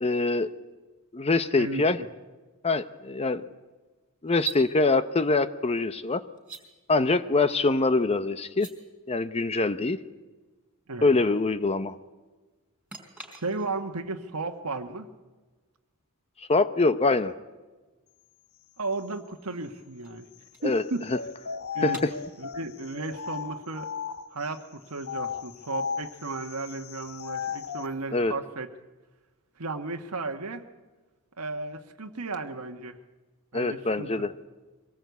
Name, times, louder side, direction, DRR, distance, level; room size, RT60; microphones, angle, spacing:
voice 1, 0.0-0.5 1.1-2.0 2.6-3.4 4.2-6.2 6.9-8.7 9.1-10.0 11.0-12.0 16.5-17.3 20.6-20.8 21.8-22.1 28.1-28.3 33.5-34.3, left 3 dB, 30° left, 12 dB, 0.7 m, -24 dB
voice 2, 1.6-2.1 3.3-3.5 10.9-11.1 13.4-15.1 18.8-20.3 20.6-21.1 21.7-22.0 22.4-23.9 24.3-28.7 29.6-30.6 31.4-33.0 33.5-34.2, right 3 dB, 80° right, 5 dB, 1.4 m, -34 dB
sound 1, 4.3-4.6 6.4-6.6 8.4-8.7 12.9-13.9 17.1-17.2 19.1-21.3 21.9-22.1, right 7 dB, 5° right, 4.3 m, -41 dB
sound 2, 21.1-24.5 25.0-27.9, left 6 dB, 65° left, 1.1 m, -35 dB
24.0 x 18.5 x 8.2 m, 1.3 s
head